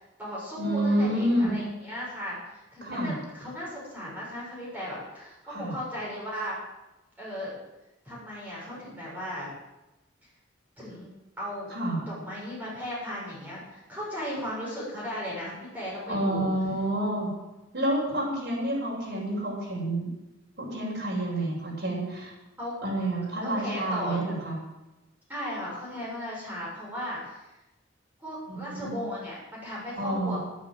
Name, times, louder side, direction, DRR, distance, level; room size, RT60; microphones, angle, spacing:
voice 1, 0.0-6.6 7.2-7.6 8.0-9.5 10.8-11.1 11.4-11.7 12.1-16.5 22.6-22.8 23.4-24.2 25.3-27.5 28.2-30.4, equal, 10° right, -7 dB, 7.0 m, -36 dB
voice 2, 0.6-1.6 2.8-3.1 5.4-5.7 11.7-12.0 16.1-17.3 17.7-20.1 20.6-22.3 22.8-24.6 28.5-29.0 30.0-30.4, right 1 dB, 60° right, -4 dB, 7.3 m, -28 dB
13.5 x 11.5 x 7.8 m, 0.99 s
head